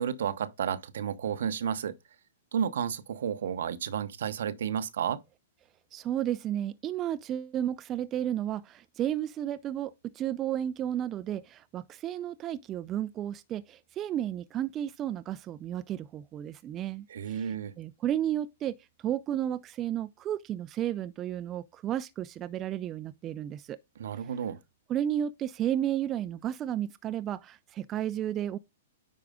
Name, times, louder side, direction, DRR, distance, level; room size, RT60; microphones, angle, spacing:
voice 1, 0.0-1.9 2.5-5.2 17.1-17.7 24.0-24.6, right 8 dB, 70° right, 0.9 m, -32 dB
voice 2, 5.9-18.7 19.0-23.8 24.9-28.6, right 11 dB, 30° right, 0.5 m, -33 dB
9.4 x 4.8 x 3.7 m
hypercardioid pair, 120°, 0 cm